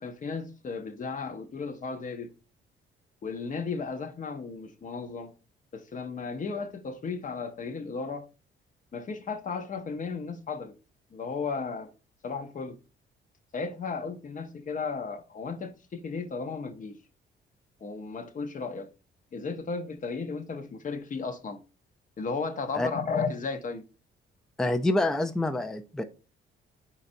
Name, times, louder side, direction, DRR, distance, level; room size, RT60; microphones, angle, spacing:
voice 1, 0.0-2.3 3.2-5.3 5.7-8.3 8.9-10.7 11.1-11.9 12.2-12.8 13.5-17.0 17.8-18.9 19.3-21.6 22.2-23.8, left 4 dB, 40° left, 0.7 m, -34 dB
voice 2, 24.6-26.0, left 2 dB, 5° left, 0.4 m, -27 dB
4.2 x 3.9 x 2.6 m
cardioid pair, 90°, 20 cm